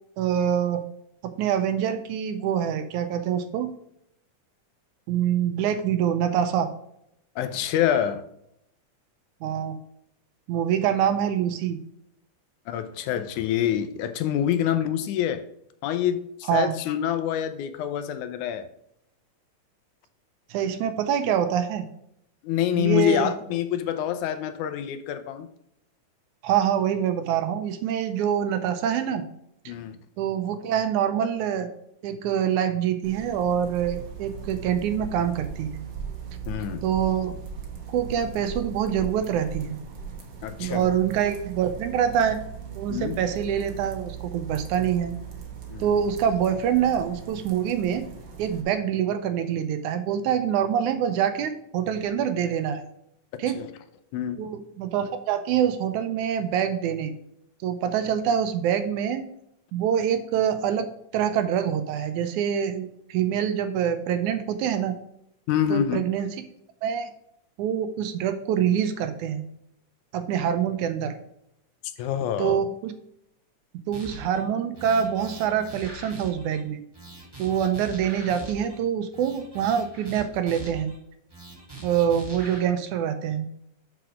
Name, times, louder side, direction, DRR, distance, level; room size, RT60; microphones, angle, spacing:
voice 1, 0.2-0.8 1.2-3.7 5.1-6.7 9.4-9.8 10.5-11.8 16.5-16.7 20.5-21.9 22.8-23.3 26.4-29.2 29.7-29.8 30.2-31.7 32.0-35.8 36.8-37.3 37.9-39.8 40.6-42.4 42.8-45.1 45.8-48.1 48.4-52.9 53.4-53.6 54.4-57.1 57.6-59.2 59.7-65.0 65.7-66.4 66.8-67.1 67.6-69.4 70.1-71.1 72.4-72.9 73.9-76.8 77.4-80.9 81.8-83.5, right 9 dB, 75° right, 8 dB, 2.0 m, -25 dB
voice 2, 7.4-8.2 12.7-15.5 15.8-18.7 22.4-25.5 29.7-30.0 36.5-36.9 40.4-40.9 42.9-43.2 45.7-45.9 53.6-53.7 54.1-54.4 65.5-66.0 72.0-72.6, left 10 dB, 80° left, 10 dB, 2.0 m, -26 dB
sound 1, 33.0-48.6, right 6 dB, 55° right, 1.3 m, -39 dB
sound 2, 73.9-74.4 74.7-76.6 76.9-78.8 79.1-81.0 81.3-82.6, right 2 dB, 10° right, 1.4 m, -42 dB
6.1 x 6.1 x 4.8 m, 0.75 s
omnidirectional pair, 3.6 m